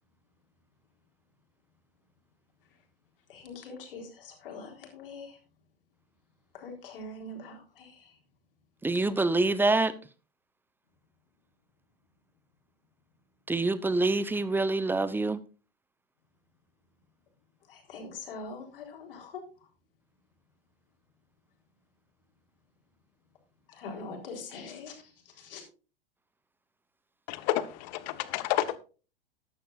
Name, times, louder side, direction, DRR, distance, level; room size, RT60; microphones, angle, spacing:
voice 1, 3.3-5.4 6.5-8.0 17.7-19.4 23.7-25.0 25.4-25.6, left 3 dB, 65° left, 3.9 m, -43 dB
voice 2, 8.8-9.9 13.5-15.4, right 2 dB, 5° right, 0.9 m, -26 dB
voice 3, 27.3-28.8, left 14 dB, 50° left, 1.2 m, -30 dB
13.5 x 11.0 x 2.5 m
figure-of-eight pair, 90°, 29 cm